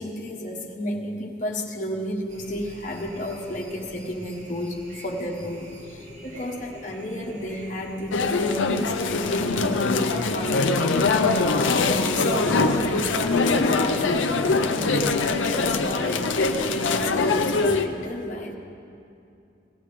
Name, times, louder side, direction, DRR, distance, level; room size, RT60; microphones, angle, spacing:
voice 1, 0.0-14.1 14.7-18.5, left 1 dB, 40° left, -1 dB, 1.4 m, -32 dB
sound 1, 2.3-17.5, right 1 dB, 40° right, 1.9 m, -45 dB
sound 2, 8.1-17.9, left 3 dB, 90° left, 0.6 m, -23 dB
18.0 x 15.0 x 3.3 m, 2.6 s
head